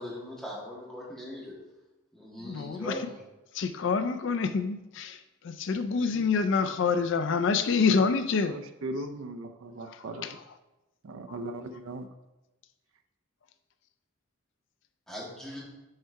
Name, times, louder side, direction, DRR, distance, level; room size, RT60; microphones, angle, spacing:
voice 1, 0.0-1.5 2.1-3.2 15.1-15.6, left 1 dB, 5° left, -6 dB, 1.7 m, -40 dB
voice 2, 2.4-3.0 3.5-5.2 5.4-8.5 9.8-10.3, left 5 dB, 60° left, 10 dB, 0.4 m, -27 dB
voice 3, 8.5-10.3 11.0-12.1, right 2 dB, 75° right, 8 dB, 0.5 m, -38 dB
6.5 x 4.6 x 4.6 m, 1.0 s
head